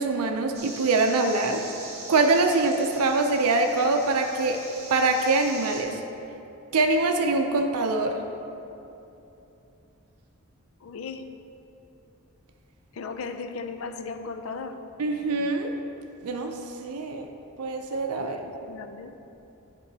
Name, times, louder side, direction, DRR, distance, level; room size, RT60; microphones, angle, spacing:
voice 1, 0.0-1.6 2.1-4.6 4.9-6.0 6.7-8.2 15.0-15.7 16.2-16.5 16.8-17.3 17.6-18.4, right 3 dB, 90° right, 4 dB, 0.5 m, -24 dB
sound 1, 0.5-5.8, right 2 dB, 30° right, 1.2 m, -42 dB
voice 2, 10.8-11.3 12.9-14.8 18.2-19.1, left 4 dB, 70° left, 8 dB, 0.4 m, -36 dB
11.0 x 3.8 x 4.0 m, 2.9 s
head